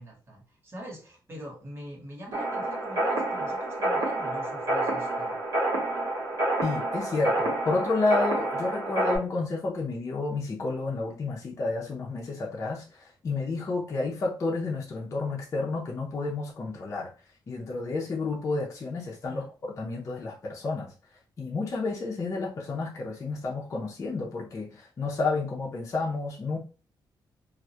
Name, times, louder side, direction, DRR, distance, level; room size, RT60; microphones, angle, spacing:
voice 1, 0.0-5.4 19.2-19.5, equal, 30° right, 1.0 m, -44 dB
sound 1, 2.3-9.2, right 1 dB, 60° right, 0.8 m, -28 dB
voice 2, 6.6-17.1 17.5-20.9 21.4-26.6, left 3 dB, 40° left, 0.5 m, -30 dB
2.2 x 2.0 x 2.7 m
cardioid pair, 125°, 8 cm